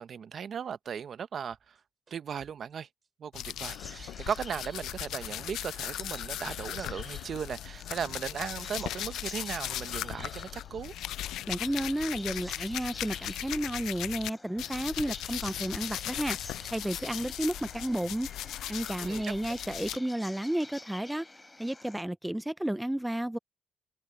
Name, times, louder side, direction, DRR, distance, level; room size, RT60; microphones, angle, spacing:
voice 1, 0.0-1.8 2.1-2.9 3.2-10.9 19.0-19.3, right 7 dB, 55° right, 0.7 m, -37 dB
sound 1, 1.5-5.6 5.9-7.8 8.1-9.4 9.6-13.2 13.4-15.4 15.6-17.7, right 5 dB, 40° right, 5.3 m, -62 dB
sound 2, 3.3-14.3 14.6-20.0, left 13 dB, 85° left, 0.5 m, -38 dB
sound 3, 3.6-22.0, left 2 dB, 15° left, 6.1 m, -49 dB
voice 2, 11.5-16.4 16.7-18.3 18.7-21.3 21.6-23.4, right 1 dB, 5° right, 0.3 m, -32 dB
cardioid pair, 90°, 0 cm